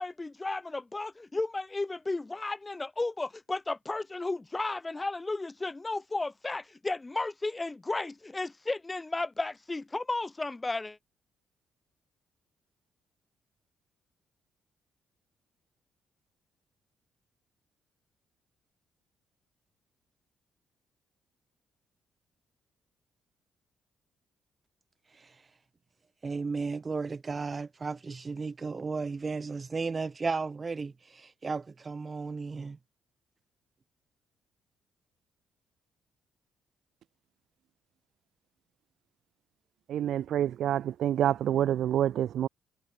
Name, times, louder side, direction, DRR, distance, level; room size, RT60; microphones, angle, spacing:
voice 1, 0.0-11.0, left 2 dB, 20° left, 1.8 m, -34 dB
voice 2, 26.2-32.8, right 4 dB, 30° right, 0.9 m, -34 dB
voice 3, 39.9-42.5, right 11 dB, 70° right, 1.2 m, -27 dB
cardioid pair, 90°, 0 cm